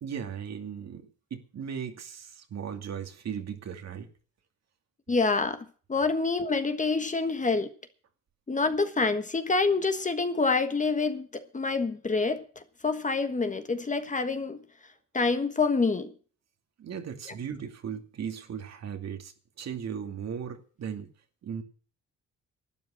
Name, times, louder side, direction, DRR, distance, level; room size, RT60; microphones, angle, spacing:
voice 1, 0.0-4.1 16.8-21.1 21.4-21.6, right 7 dB, 60° right, 2.4 m, -37 dB
voice 2, 5.1-5.6 5.9-7.7 8.5-12.4 12.8-14.6 15.1-16.1, left 4 dB, 25° left, 1.5 m, -27 dB
12.0 x 9.5 x 7.7 m
cardioid pair, 90°, 30 cm